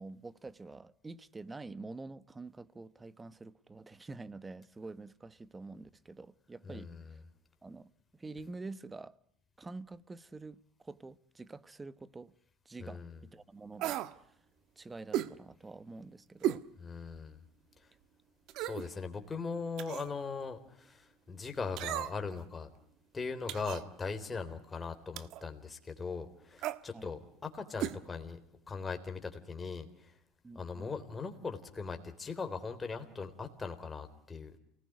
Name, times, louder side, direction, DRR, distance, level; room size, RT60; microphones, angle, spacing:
voice 1, 0.0-6.9 7.6-9.1 9.6-12.3 12.6-14.0 14.8-16.7 26.9-27.1 30.4-30.9, right 3 dB, 15° right, 1.1 m, -47 dB
voice 2, 6.6-7.1 12.8-13.2 16.8-17.4 17.8-17.9 18.6-22.7 23.1-28.4 28.7-30.2 30.5-34.6, left 4 dB, 15° left, 3.6 m, -40 dB
sound 1, 13.8-14.2 15.1-15.3 16.4-16.7 17.1-17.2 18.5-18.9 19.8-20.1 21.8-22.3 23.5-23.9 25.2-25.4 26.6-26.8 27.8-28.0 28.2-28.3, right 12 dB, 55° right, 1.3 m, -35 dB
29.0 x 19.5 x 9.4 m
supercardioid pair, 135°, 0 cm